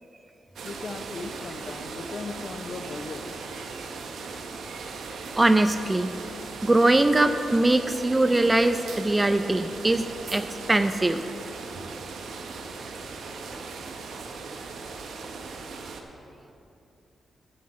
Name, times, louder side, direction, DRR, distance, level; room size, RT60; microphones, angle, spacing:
voice 1, 0.6-3.2, left 4 dB, 55° left, 8 dB, 0.7 m, -37 dB
sound 1, 0.6-16.0, right 4 dB, 80° right, 0.9 m, -38 dB
voice 2, 5.4-6.1 6.6-11.2, right 2 dB, 20° right, 10 dB, 0.4 m, -22 dB
11.0 x 6.0 x 7.4 m, 2.8 s
cardioid pair, 70°, 0 cm